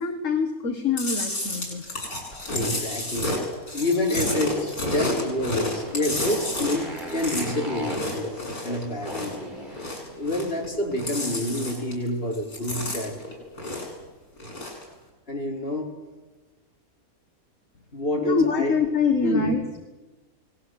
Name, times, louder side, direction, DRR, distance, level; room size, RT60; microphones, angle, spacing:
voice 1, 0.0-1.9 18.2-19.6, left 5 dB, 60° left, 5 dB, 2.2 m, -25 dB
Chewing mastication, 1.0-9.4 9.7-10.7 10.9-12.1 12.3-14.0 14.4-14.8, left 1 dB, 85° left, 8.1 m, -30 dB
voice 2, 2.5-3.3 3.7-8.3 8.6-9.5 10.1-13.2 15.3-15.9 17.9-18.7 19.2-19.6, left 1 dB, 40° left, 0 dB, 4.8 m, -28 dB
Motorcycle, 5.3-11.7, right 1 dB, 30° right, 5.1 m, -40 dB
29.0 x 19.5 x 8.0 m, 1.2 s
omnidirectional pair, 1.5 m